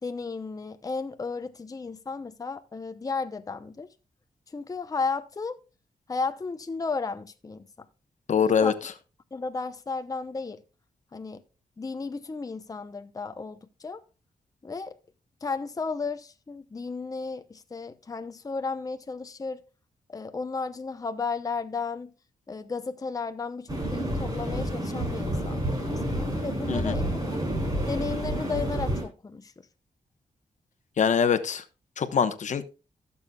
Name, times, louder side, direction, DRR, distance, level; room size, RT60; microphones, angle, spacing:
voice 1, 0.0-3.9 4.5-5.6 6.1-7.6 8.6-8.8 9.3-10.6 11.1-11.4 11.8-14.0 14.6-15.0 15.4-19.6 20.1-22.1 22.5-27.4 27.8-29.5, left 4 dB, 25° left, 0.7 m, -34 dB
voice 2, 8.3-8.7 26.7-26.9 31.0-31.6 32.0-32.6, left 7 dB, 65° left, 1.0 m, -23 dB
sound 1, 23.7-29.0, right 1 dB, 30° right, 5.0 m, -29 dB
16.0 x 7.1 x 2.3 m
cardioid pair, 90°, 13 cm